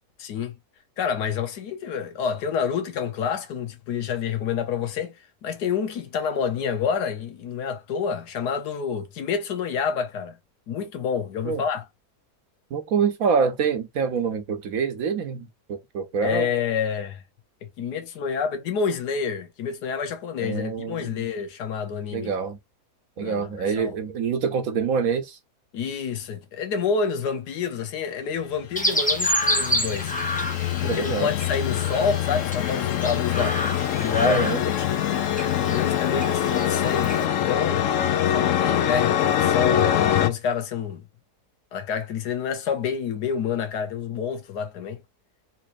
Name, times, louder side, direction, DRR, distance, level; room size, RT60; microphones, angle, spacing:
voice 1, 0.2-0.5 1.0-10.4 10.7-11.8 16.2-17.2 17.6-22.3 23.2-24.0 25.7-30.2 30.8-33.6 33.9-34.9 35.6-37.9 38.2-41.1 41.7-45.0, left 6 dB, 85° left, 1.4 m, -28 dB
voice 2, 12.7-16.5 20.4-21.2 22.1-22.6 23.2-25.4 30.8-31.3 34.2-34.6, right 6 dB, 65° right, 1.1 m, -26 dB
sound 1, 28.7-40.3, left 10 dB, 70° left, 0.8 m, -24 dB
Chirp tweet, 28.8-37.3, equal, 10° left, 0.5 m, -29 dB
4.0 x 3.0 x 2.5 m
omnidirectional pair, 1.7 m